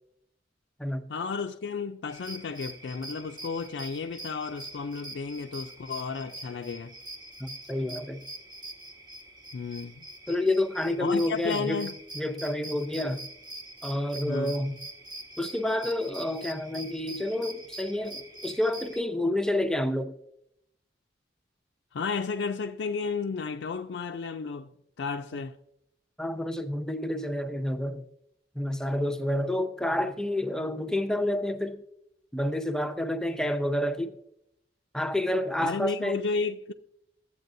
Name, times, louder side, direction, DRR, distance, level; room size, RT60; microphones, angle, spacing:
voice 1, 1.1-6.9 9.5-10.1 11.0-11.9 14.2-14.6 21.9-25.6 35.6-36.7, left 5 dB, 75° left, 0.4 m, -33 dB
sound 1, 2.1-19.0, right 2 dB, 25° right, 0.9 m, -44 dB
voice 2, 7.4-8.2 10.3-13.2 13.8-14.8 15.4-20.1 26.2-28.0 28.6-31.8 32.3-34.1 34.9-36.2, left 1 dB, 5° left, 0.5 m, -29 dB
13.0 x 8.3 x 2.6 m
head